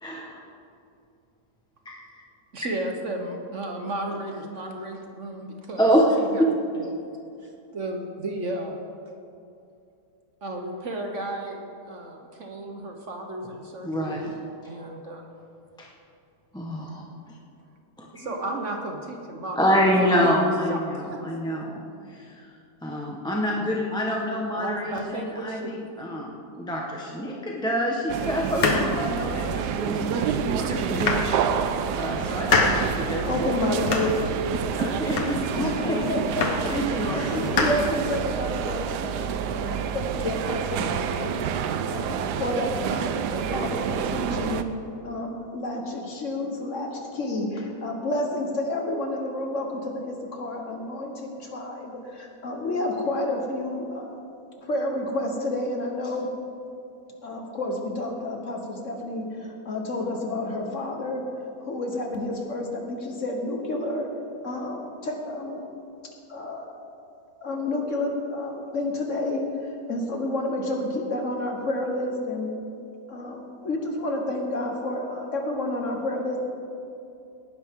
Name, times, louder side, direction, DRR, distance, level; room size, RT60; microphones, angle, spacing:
voice 1, 0.0-0.4 1.8-2.0 5.8-6.0 6.4-6.5 13.8-14.3 15.8-15.9 16.5-17.0 18.0-18.1 19.6-21.8 22.1-22.5 22.8-33.6 34.8-36.1 36.7-37.7, equal, 5° left, -2 dB, 0.8 m, -27 dB
voice 2, 2.5-5.9 6.2-6.4 6.7-6.9 7.4-8.8 10.4-15.3 18.1-20.3 20.7-21.2 24.3-25.8, right 1 dB, 50° right, 2 dB, 1.2 m, -34 dB
sound 1, 28.1-44.6, right 7 dB, 75° right, 1.2 m, -28 dB
sound 2, 28.4-29.8 30.3-30.4 30.8-31.7 32.1-33.0 33.4-34.3 34.6-35.6 36.0-36.8 37.1-38.4, left 3 dB, 90° left, 1.9 m, -27 dB
voice 3, 33.3-34.2 34.8-35.0 35.6-41.3 41.6-44.6 45.0-54.2 54.6-56.3 57.2-61.2 61.6-64.1 64.4-65.6 66.0-66.7 67.4-72.5 73.1-76.4, left 1 dB, 50° left, 2 dB, 1.5 m, -30 dB
18.0 x 10.5 x 3.7 m, 2.6 s
omnidirectional pair, 1.8 m